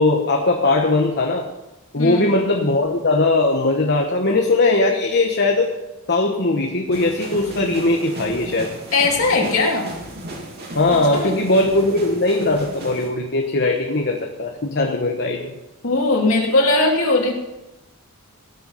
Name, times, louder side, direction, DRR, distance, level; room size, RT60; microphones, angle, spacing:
voice 1, 0.0-1.5 1.9-5.7 6.1-8.7 10.7-15.5, left 2 dB, 50° left, 2 dB, 1.2 m, -19 dB
voice 2, 2.0-2.3 8.9-9.9 11.1-11.3 15.8-17.3, left 2 dB, 65° left, -2 dB, 2.8 m, -19 dB
sound 1, 6.9-13.1, right 1 dB, 50° right, 2.6 m, -35 dB
18.0 x 8.0 x 5.7 m, 0.99 s
head